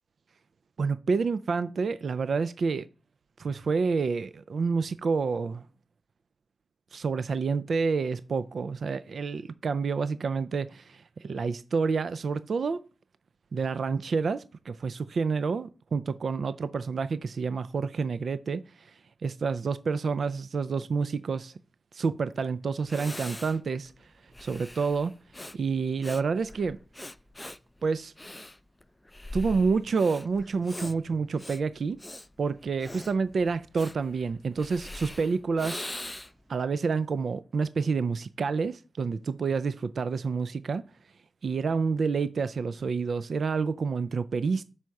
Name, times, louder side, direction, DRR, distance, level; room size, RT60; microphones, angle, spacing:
voice 1, 0.8-2.9 3.4-5.6 6.9-12.8 13.5-21.5 21.9-25.1 25.5-26.8 27.8-28.1 29.3-32.0 32.4-35.9 36.5-40.8 41.4-44.6, right 5 dB, 65° right, 0.3 m, -29 dB
Breathing, 22.4-22.5 22.8-36.5, left 1 dB, 15° left, 0.3 m, -42 dB
5.6 x 4.6 x 6.3 m
wide cardioid pair, 85°, 0 cm